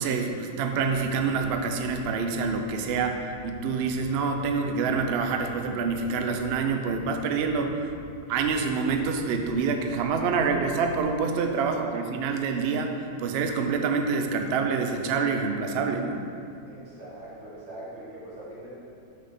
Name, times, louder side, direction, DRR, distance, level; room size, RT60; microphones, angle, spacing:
voice 1, 0.0-7.9 8.3-16.2, right 5 dB, 80° right, 5 dB, 0.5 m, -27 dB
sound 1, 2.3-2.5 2.8-3.0 3.3-3.5 3.8-4.0 4.3-4.5 4.8-5.0 5.3-5.5 5.8-6.0 6.3-6.5 6.8-7.0 7.3-7.5 7.8-8.0 8.3-8.5 8.8-9.0 9.3-9.5 9.8-10.0 10.3-10.5 10.8-11.0, left 2 dB, 55° left, 1.3 m, -49 dB
voice 2, 16.6-18.7, right 1 dB, 45° right, -8 dB, 2.0 m, -42 dB
6.3 x 4.0 x 5.5 m, 2.5 s
omnidirectional pair, 1.7 m